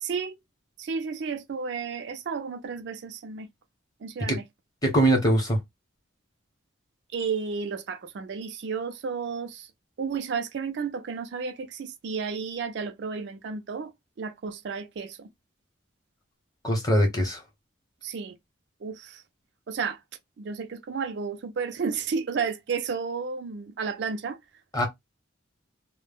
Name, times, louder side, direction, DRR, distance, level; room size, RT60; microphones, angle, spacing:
voice 1, 0.0-0.3 0.8-3.5 4.0-4.4 7.1-9.7 10.0-15.3 18.0-18.4 18.8-19.2 19.7-20.0 20.4-24.4, right 5 dB, 60° right, 0.4 m, -32 dB
voice 2, 4.8-5.6 16.6-17.4 24.7-24.9, right 1 dB, 20° left, 0.8 m, -22 dB
2.0 x 2.0 x 3.4 m
head